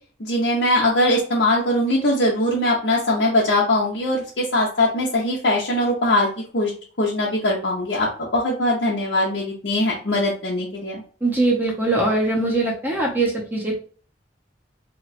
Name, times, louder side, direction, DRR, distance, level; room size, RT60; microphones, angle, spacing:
voice 1, 0.2-6.3 6.5-6.7 7.0-11.0, left 1 dB, 70° left, -4 dB, 0.8 m, -21 dB
voice 2, 11.2-13.8, right 2 dB, 10° right, -2 dB, 0.7 m, -21 dB
2.9 x 2.3 x 4.1 m, 0.42 s
head